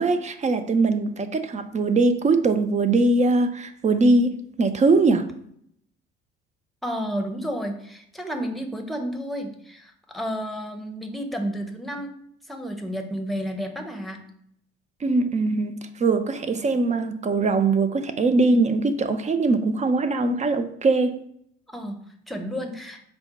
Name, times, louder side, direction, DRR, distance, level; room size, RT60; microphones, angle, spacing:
voice 1, 0.0-5.3 15.0-21.2, right 3 dB, 20° right, 0.4 m, -21 dB
voice 2, 6.8-12.2 12.5-14.3 21.7-23.0, equal, ahead, 0.8 m, -31 dB
4.5 x 2.1 x 4.0 m
hypercardioid pair, 60°, 34 cm